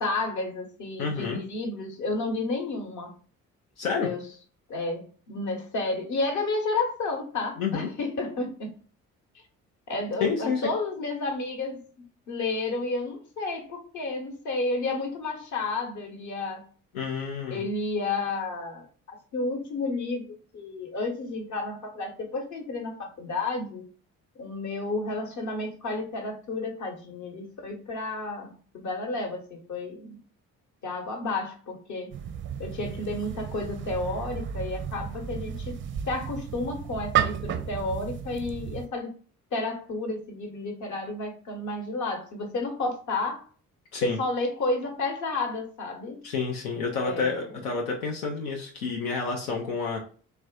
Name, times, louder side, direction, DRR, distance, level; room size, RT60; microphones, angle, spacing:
voice 1, 0.0-3.2 4.0-4.2 4.7-8.7 9.9-11.8 12.3-16.6 17.5-18.9 19.3-23.8 24.4-30.2 30.8-32.1 32.6-35.8 36.1-39.1 39.5-43.4 44.0-46.2 47.0-47.4, left 3 dB, 45° left, 3 dB, 1.0 m, -31 dB
voice 2, 1.0-1.4 3.8-4.1 7.6-7.9 10.2-10.7 16.9-17.7 43.9-44.2 46.2-50.0, left 5 dB, 85° left, 0 dB, 0.6 m, -29 dB
kettle on stove on fire, 32.1-38.9, right 9 dB, 30° right, 0.4 m, -33 dB
3.3 x 2.4 x 2.2 m, 0.42 s
figure-of-eight pair, 45°, 42 cm